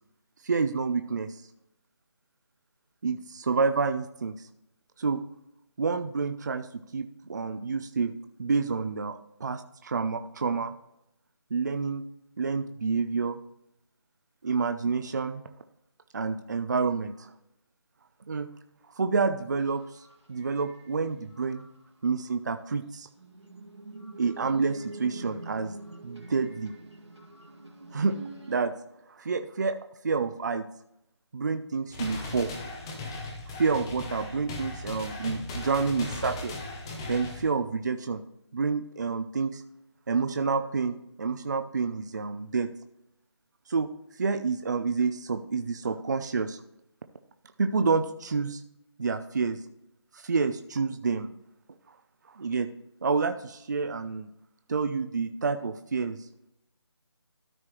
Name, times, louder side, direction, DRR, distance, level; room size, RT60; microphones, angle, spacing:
voice 1, 0.4-1.4 3.0-4.5 5.0-5.2 5.8-6.7 6.9-10.7 11.5-12.0 12.4-13.4 14.4-15.4 16.1-17.3 18.3-18.5 18.9-21.7 22.0-23.1 24.2-25.8 26.0-26.7 27.9-28.2 28.5-28.7 29.1-29.8 30.0-30.7 31.3-32.5 33.6-36.6 37.1-38.2 38.5-39.6 40.1-42.7 43.7-43.9 44.2-46.6 47.6-48.6 49.0-49.6 50.1-51.3 51.9-52.0 52.3-52.7 53.0-54.3 54.7-56.3, right 4 dB, 40° right, 8 dB, 0.5 m, -28 dB
sound 1, 19.6-21.0 21.3-22.3 23.2-28.6, right 2 dB, 80° right, 2.0 m, -45 dB
sound 2, 31.9-37.5, left 2 dB, 10° left, 0.6 m, -38 dB
13.0 x 4.4 x 3.1 m, 0.80 s
figure-of-eight pair, 160°, 14 cm